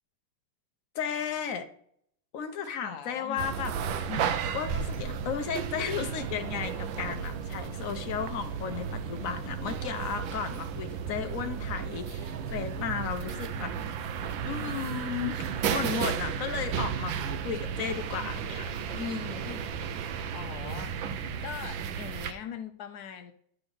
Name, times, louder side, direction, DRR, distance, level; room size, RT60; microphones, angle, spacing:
voice 1, 0.9-1.7 2.3-3.7 4.5-13.7 14.5-15.4 15.7-17.1 17.4-19.6, left 7 dB, 60° left, 7 dB, 0.9 m, -34 dB
voice 2, 2.8-3.7 4.1-4.3 20.3-23.3, left 8 dB, 85° left, 8 dB, 0.8 m, -42 dB
sound 1, 3.4-22.3, right 7 dB, 70° right, 1.3 m, -34 dB
9.8 x 3.8 x 6.1 m, 0.65 s
omnidirectional pair, 2.4 m